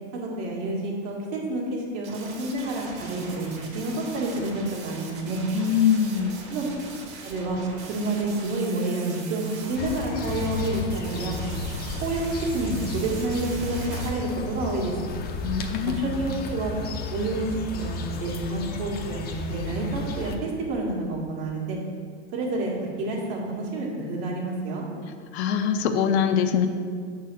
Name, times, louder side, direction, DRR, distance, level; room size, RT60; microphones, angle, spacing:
voice 1, 0.1-5.4 6.5-6.7 7.2-7.6 7.9-11.4 12.0-14.9 15.9-16.7 17.1-21.8 22.3-24.9, right 2 dB, 60° right, -2 dB, 2.0 m, -29 dB
sound 1, 2.0-14.1, right 4 dB, 40° right, 1.6 m, -41 dB
voice 2, 5.5-6.4 15.4-16.1 25.3-26.7, left 8 dB, 65° left, 7 dB, 0.7 m, -23 dB
sound 2, 9.8-20.4, left 3 dB, 25° left, 0.6 m, -33 dB
6.5 x 4.3 x 6.2 m, 2.1 s
supercardioid pair, 125°, 35 cm